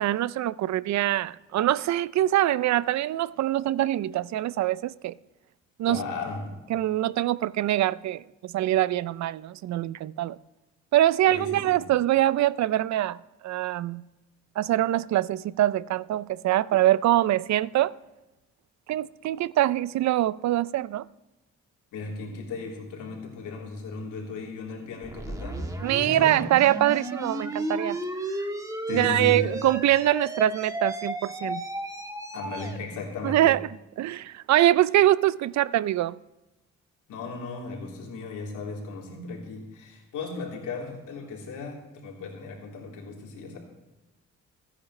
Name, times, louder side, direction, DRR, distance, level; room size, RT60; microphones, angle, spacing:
voice 1, 0.0-5.1 5.8-6.0 6.7-10.4 10.9-13.2 13.4-14.0 14.6-17.9 18.9-21.0 25.8-28.0 28.9-31.6 33.2-33.6 34.0-36.2, right 14 dB, 65° right, 0.5 m, -24 dB
voice 2, 5.8-6.7 11.3-11.9 21.9-26.4 28.9-29.6 32.3-33.6 37.1-43.6, left 3 dB, 85° left, 3.6 m, -36 dB
sound 1, 25.0-32.8, right 1 dB, 10° right, 1.6 m, -33 dB
25.0 x 10.0 x 3.2 m
cardioid pair, 90°, 30 cm